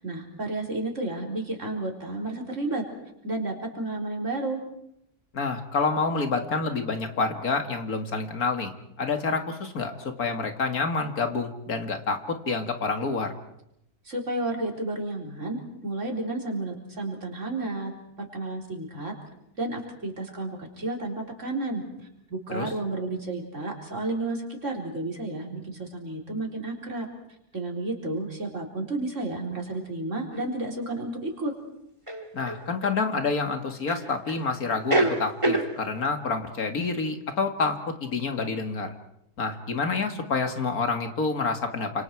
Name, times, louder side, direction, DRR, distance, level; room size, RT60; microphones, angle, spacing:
voice 1, 0.0-2.8 3.2-4.6 14.0-17.9 18.2-19.1 19.6-21.8 22.3-27.1 27.5-31.5, right 2 dB, 50° right, 0 dB, 4.4 m, -31 dB
voice 2, 5.3-8.7 9.0-12.2 12.5-13.3 22.5-22.7 32.3-38.9 39.4-42.0, left 4 dB, 70° left, 6 dB, 2.5 m, -28 dB
sound 1, 30.3-30.4 32.1-33.0 33.9-34.4 34.7-35.7, right 1 dB, 20° right, 2.6 m, -26 dB
29.5 x 26.5 x 4.7 m, 0.78 s
omnidirectional pair, 1.6 m